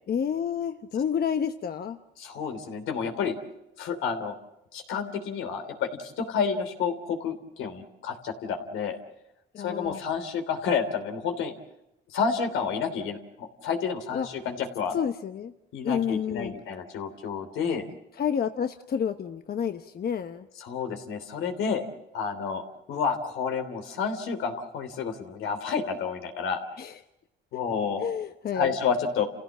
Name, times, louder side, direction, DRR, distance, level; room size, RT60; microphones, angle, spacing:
voice 1, 0.1-2.0 9.5-10.0 14.1-14.3 14.9-15.5 15.8-16.5 18.2-20.5 26.8-26.9 28.0-28.7, left 8 dB, 50° left, 7 dB, 1.0 m, -29 dB
voice 2, 2.2-3.4 3.8-4.4 4.7-9.0 9.6-11.5 12.1-15.0 15.7-17.9 20.6-21.8 22.1-22.6 22.9-26.6 27.5-28.0 28.5-29.3, left 6 dB, 90° left, 6 dB, 3.1 m, -30 dB
29.5 x 16.5 x 7.4 m, 0.88 s
cardioid pair, 90°, 20 cm